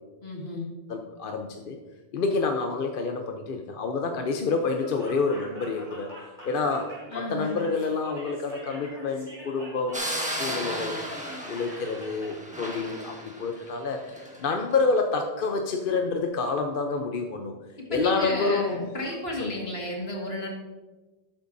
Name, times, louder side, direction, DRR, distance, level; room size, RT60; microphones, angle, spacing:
voice 1, 0.2-0.7 7.1-7.6 17.8-20.5, left 1 dB, 75° left, -1 dB, 2.3 m, -33 dB
voice 2, 0.9-1.8 2.1-6.1 6.4-11.0 11.4-17.5 17.9-18.8 19.4-19.5, left 4 dB, 60° left, 4 dB, 0.9 m, -28 dB
Laughter, 4.6-12.3, equal, 20° right, 3.4 m, -45 dB
sound 1, 9.9-14.4, equal, 5° right, 1.4 m, -34 dB
12.0 x 9.1 x 2.7 m, 1.2 s
omnidirectional pair, 1.0 m